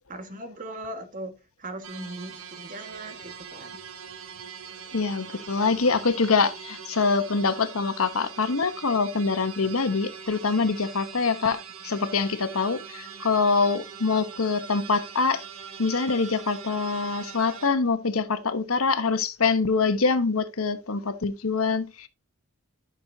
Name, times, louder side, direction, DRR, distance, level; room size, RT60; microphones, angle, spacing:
voice 1, 0.1-1.3 1.6-3.8, right 1 dB, 40° right, 1.7 m, -39 dB
sound 1, 1.8-17.7, right 7 dB, 75° right, 1.4 m, -42 dB
voice 2, 4.9-15.4 15.8-22.1, left 4 dB, 80° left, 1.1 m, -25 dB
12.0 x 6.3 x 2.8 m
head